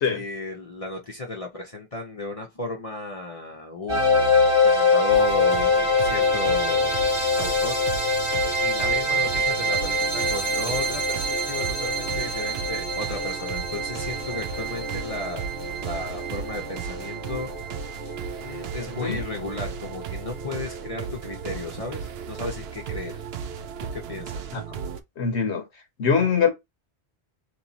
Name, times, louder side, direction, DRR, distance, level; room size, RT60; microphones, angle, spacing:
voice 1, 0.1-6.9 7.4-7.8 8.6-15.4 15.8-17.5 18.0-18.1 18.4-23.3 23.9-24.5, left 2 dB, 35° left, 0.7 m, -34 dB
sound 1, 3.9-18.9, left 2 dB, 30° right, 1.2 m, -24 dB
sound 2, 5.1-25.0, right 7 dB, 70° right, 0.8 m, -35 dB
voice 2, 25.2-25.6 26.0-26.5, left 6 dB, 80° left, 1.2 m, -22 dB
3.1 x 3.0 x 4.0 m
omnidirectional pair, 1.1 m